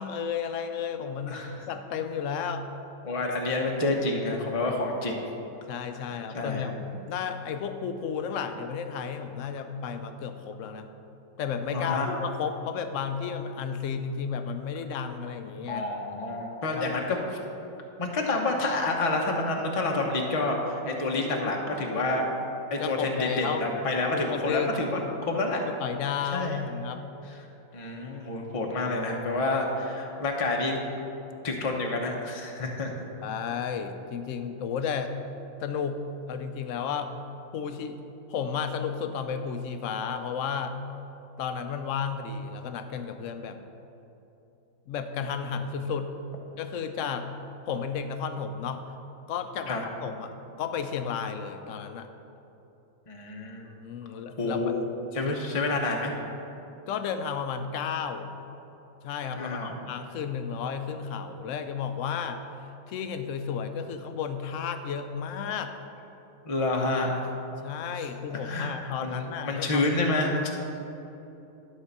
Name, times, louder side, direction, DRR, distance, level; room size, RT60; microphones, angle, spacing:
voice 1, 0.0-2.7 5.7-10.9 11.4-15.9 16.7-17.0 22.8-23.7 24.1-25.1 25.6-27.0 33.2-35.1 35.6-37.1 37.5-38.0 38.3-40.8 41.4-43.6 44.9-46.2 46.6-47.3 47.7-48.9 49.3-50.3 50.6-52.1 53.6-54.7 55.2-55.4 56.9-58.3 59.0-62.4 62.9-65.7 67.6-69.9, left 6 dB, 65° left, 8 dB, 0.9 m, -33 dB
voice 2, 1.3-1.6 3.0-5.2 6.3-6.7 11.7-12.1 15.7-17.2 18.0-22.2 22.7-25.6 26.3-26.6 27.3-27.4 27.7-30.8 31.4-33.0 49.7-49.8 53.1-53.6 54.4-54.8 55.1-56.1 59.4-59.8 66.4-67.2 68.0-68.1 68.4-70.5, left 2 dB, 30° left, 1 dB, 0.8 m, -28 dB
12.0 x 4.2 x 6.6 m, 2.9 s
omnidirectional pair, 1.5 m